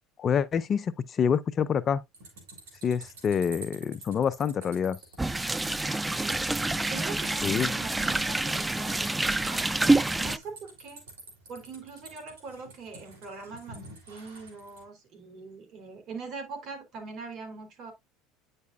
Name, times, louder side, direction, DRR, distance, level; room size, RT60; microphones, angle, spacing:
voice 1, 0.2-2.0 2.8-5.0 7.4-7.7, left 7 dB, 40° left, 0.6 m, -27 dB
sound 1, 2.1-14.8, right 3 dB, 80° right, 3.1 m, -50 dB
sound 2, 5.2-10.4, right 2 dB, 10° right, 0.5 m, -27 dB
voice 2, 5.8-6.5 6.9-9.6 10.2-11.0 11.5-13.8 14.1-17.9, right 4 dB, 55° right, 3.4 m, -42 dB
9.4 x 5.4 x 2.4 m
hypercardioid pair, 80°, 0 cm